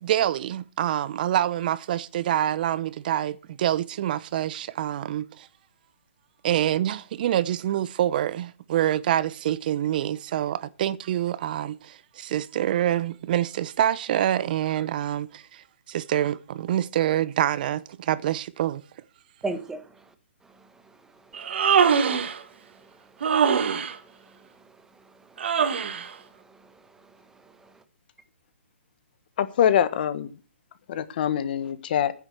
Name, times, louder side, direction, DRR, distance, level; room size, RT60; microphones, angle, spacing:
voice 1, 0.0-5.5 6.4-18.8, right 11 dB, 45° right, 0.7 m, -26 dB
voice 2, 19.4-20.1 20.4-27.8, right 3 dB, 5° right, 1.1 m, -43 dB
Human voice, 21.3-22.4 23.2-23.9 25.4-26.1, right 7 dB, 60° right, 1.6 m, -22 dB
voice 3, 29.4-30.3 30.9-32.1, left 9 dB, 45° left, 1.3 m, -24 dB
9.9 x 7.3 x 7.8 m
hypercardioid pair, 145°, 7 cm